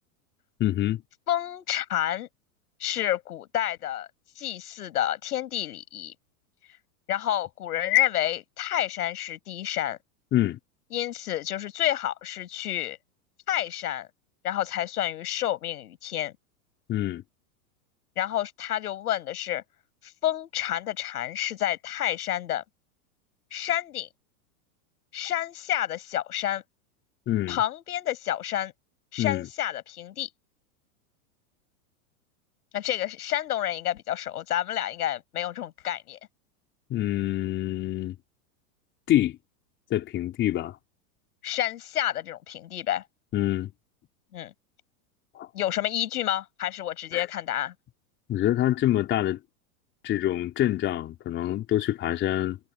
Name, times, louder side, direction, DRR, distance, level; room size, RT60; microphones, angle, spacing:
voice 1, 0.6-1.0 10.3-10.6 16.9-17.2 27.3-27.6 29.2-29.5 36.9-38.2 39.1-39.4 39.9-40.8 43.3-43.7 45.3-45.5 47.1-47.3 48.3-49.4 50.0-52.6, left 13 dB, 25° left, 3.9 m, -26 dB
voice 2, 1.3-2.3 2.8-4.1 4.4-6.1 7.1-10.0 10.9-13.0 13.5-14.1 14.4-16.3 18.2-19.6 20.0-22.6 23.5-24.1 25.1-26.6 27.5-28.7 29.1-30.3 32.7-36.2 41.4-43.0 44.3-44.5 45.5-47.7, left 12 dB, 85° left, 6.7 m, -29 dB
supercardioid pair, 155°, 44 cm